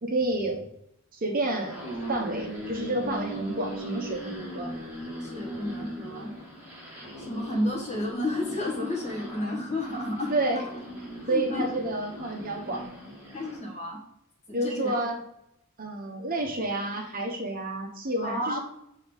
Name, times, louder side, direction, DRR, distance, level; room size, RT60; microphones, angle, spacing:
voice 1, 0.0-0.6 1.1-1.8 2.1-4.7 10.3-10.7 11.3-12.8 14.5-15.2 15.8-18.6, right 2 dB, 40° right, 3 dB, 0.8 m, -29 dB
sound 1, 1.3-13.6, right 1 dB, 10° right, 2.2 m, -39 dB
voice 2, 5.2-6.3 7.2-10.3 11.2-11.7 13.3-14.0 14.5-15.0 18.2-18.6, left 1 dB, 30° left, -2 dB, 1.7 m, -31 dB
6.7 x 3.5 x 3.9 m, 0.77 s
head